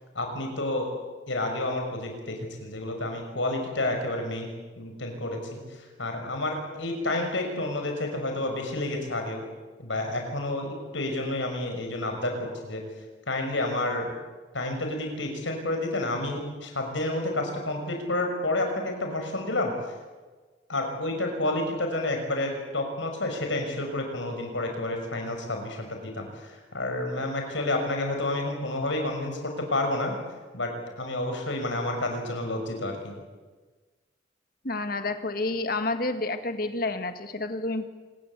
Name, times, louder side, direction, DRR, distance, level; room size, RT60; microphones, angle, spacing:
voice 1, 0.1-0.9 1.3-4.5 4.8-9.4 9.8-12.3 12.6-12.8 13.3-14.1 14.5-19.7 20.7-30.2 30.5-30.7 31.0-33.1, left 2 dB, 75° left, 3 dB, 5.9 m, -30 dB
voice 2, 34.6-37.8, left 2 dB, 45° left, 8 dB, 1.8 m, -29 dB
26.5 x 21.0 x 8.3 m, 1.4 s
head